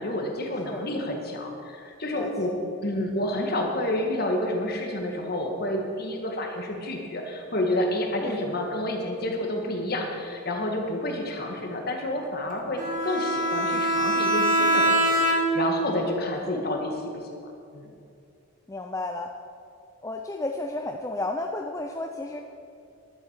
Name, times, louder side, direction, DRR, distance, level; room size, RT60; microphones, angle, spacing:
voice 1, 0.0-2.5 2.8-17.2 17.7-17.9, left 1 dB, 45° left, 2 dB, 1.7 m, -29 dB
voice 2, 2.1-2.5 8.2-8.4 16.5-16.6 18.7-19.3 20.0-22.4, left 2 dB, 15° left, 3 dB, 0.4 m, -32 dB
Bowed string instrument, 12.8-15.8, right 1 dB, 40° right, 1.7 m, -23 dB
11.5 x 7.8 x 7.4 m, 2.5 s
head